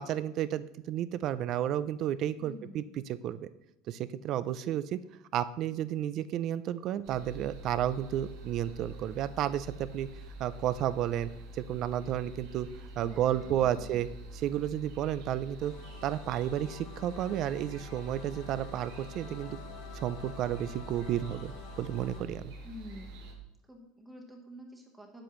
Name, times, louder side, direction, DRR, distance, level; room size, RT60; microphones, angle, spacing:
voice 1, 0.0-2.8 3.1-3.5 3.9-5.0 5.3-10.1 10.4-12.7 13.0-14.1 14.3-15.7 16.0-19.6 19.9-22.5, right 11 dB, 45° right, 15 dB, 0.4 m, -32 dB
voice 2, 2.4-2.9 12.9-14.1 22.6-23.2 23.7-25.2, equal, 10° right, 1 dB, 1.1 m, -49 dB
sound 1, 7.0-23.3, right 1 dB, 85° right, 1.7 m, -46 dB
sound 2, 15.6-22.2, left 6 dB, 65° left, 1.0 m, -49 dB
8.4 x 7.5 x 3.1 m, 0.87 s
supercardioid pair, 140°, 0 cm